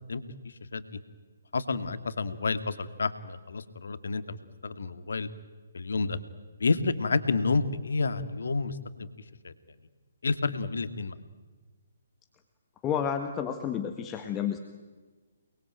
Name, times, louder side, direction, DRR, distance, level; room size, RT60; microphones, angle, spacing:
voice 1, 1.5-4.4 4.6-5.3 5.7-6.2 6.6-9.1 9.4-9.5 10.2-11.1, left 4 dB, 70° left, 11 dB, 2.2 m, -29 dB
voice 2, 12.8-14.6, left 8 dB, 20° left, 6 dB, 1.8 m, -30 dB
29.0 x 21.5 x 9.1 m, 1.4 s
figure-of-eight pair, 140°, 0 cm